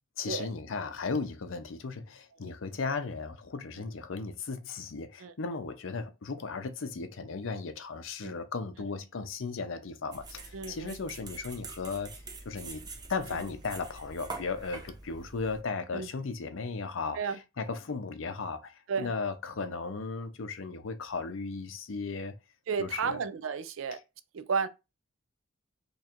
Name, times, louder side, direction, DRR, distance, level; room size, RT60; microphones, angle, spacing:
voice 1, 0.2-22.3 22.8-23.2, left 4 dB, 80° left, 0.6 m, -36 dB
sound 1, 10.1-15.6, right 3 dB, 20° right, 0.5 m, -45 dB
voice 2, 10.5-10.9 15.9-16.1 17.2-17.4 18.9-19.1 22.7-24.0 24.3-24.7, right 5 dB, 85° right, 0.5 m, -32 dB
3.0 x 2.4 x 4.3 m
head